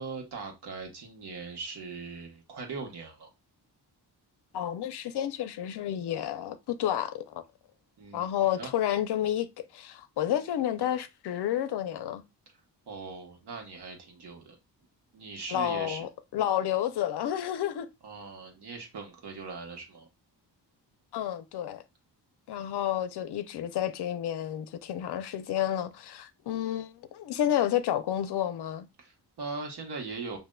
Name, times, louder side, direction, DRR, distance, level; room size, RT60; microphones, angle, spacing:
voice 1, 0.0-3.3 8.0-8.7 12.9-14.6 15.1-16.1 18.0-20.1 22.5-22.8 29.0-30.4, right 4 dB, 70° right, 1.2 m, -40 dB
voice 2, 4.5-7.4 8.1-9.5 9.7-12.2 15.5-17.9 21.1-21.8 22.5-28.9, left 11 dB, 70° left, 0.6 m, -30 dB
6.2 x 2.6 x 2.2 m
wide cardioid pair, 160°, 41 cm